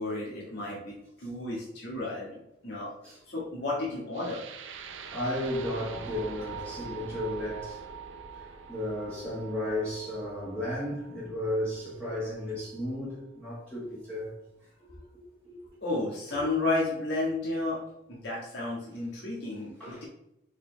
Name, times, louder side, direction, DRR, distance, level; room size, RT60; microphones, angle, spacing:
voice 1, 0.0-2.9 3.3-4.4 15.8-17.8 18.1-20.0, left 2 dB, 60° left, 1.6 m, -32 dB
sound 1, 4.1-12.2, right 6 dB, 75° right, 0.6 m, -44 dB
voice 2, 5.1-7.8 8.3-14.3 15.4-15.7 19.8-20.0, left 1 dB, 5° left, 1.6 m, -34 dB
7.1 x 4.1 x 3.3 m
head